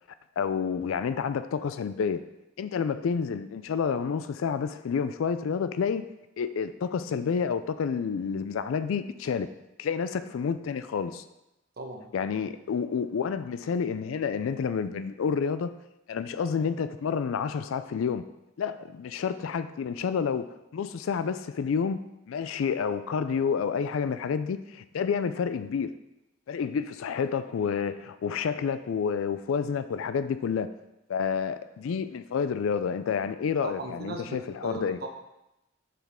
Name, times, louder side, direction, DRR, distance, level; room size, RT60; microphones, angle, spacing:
voice 1, 0.4-2.2 2.6-6.1 6.4-9.5 9.8-11.2 12.1-15.7 16.1-18.2 18.6-22.0 22.3-25.9 26.5-30.7 31.1-35.0, left 6 dB, 80° left, 12 dB, 0.4 m, -29 dB
voice 2, 11.8-12.1 33.6-35.1, right 2 dB, 50° right, 3 dB, 0.9 m, -38 dB
7.2 x 5.9 x 3.6 m, 0.92 s
head